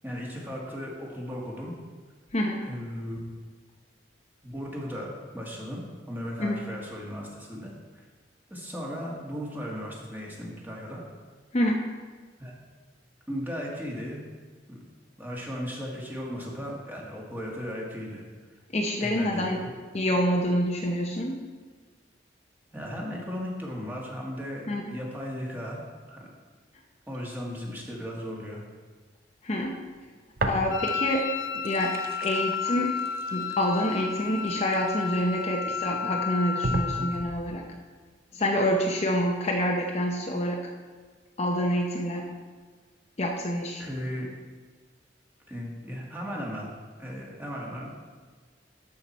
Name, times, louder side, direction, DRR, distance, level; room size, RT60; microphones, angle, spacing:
voice 1, 0.0-1.7 2.6-3.2 4.4-8.0 8.5-11.0 12.4-12.6 13.3-14.2 14.7-14.8 15.2-18.2 19.0-19.7 22.7-25.8 26.1-26.3 27.1-28.6 30.4-30.6 43.8-44.3 45.5-46.7 47.0-47.9, equal, 10° right, -3 dB, 1.7 m, -36 dB
voice 2, 2.3-2.6 6.4-6.6 11.5-11.8 18.7-19.7 19.9-21.4 24.7-24.9 29.4-29.8 30.5-31.3 31.5-33.0 33.3-37.6 38.3-40.6 41.4-42.3 43.2-43.8, equal, 35° left, 0 dB, 0.8 m, -27 dB
sound 1, 30.4-31.1 31.5-35.4 36.0-36.1 36.6-37.5, right 2 dB, 55° right, 0.7 m, -34 dB
Wind instrument woodwind instrument, 30.7-37.3, left 7 dB, 70° left, 0.6 m, -32 dB
13.0 x 5.8 x 4.2 m, 1.5 s
head